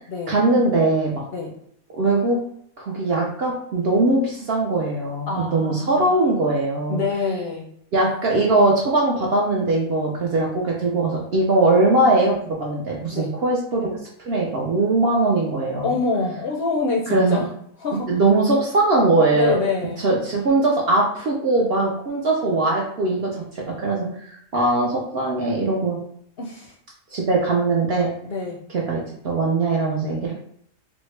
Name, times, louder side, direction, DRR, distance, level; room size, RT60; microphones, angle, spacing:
voice 1, 0.3-1.2 1.9-2.4 2.8-7.0 7.9-15.9 17.1-17.4 18.1-19.6 20.0-26.0 27.1-28.1 28.7-30.3, right 2 dB, 60° right, -2 dB, 0.7 m, -21 dB
voice 2, 5.3-6.1 6.9-7.7 11.6-11.7 13.1-13.3 15.8-17.5 17.8-18.2 19.3-20.1 26.4-26.7 28.2-28.6, left 3 dB, 60° left, 0 dB, 0.6 m, -26 dB
3.5 x 2.1 x 3.1 m, 0.67 s
omnidirectional pair, 1.4 m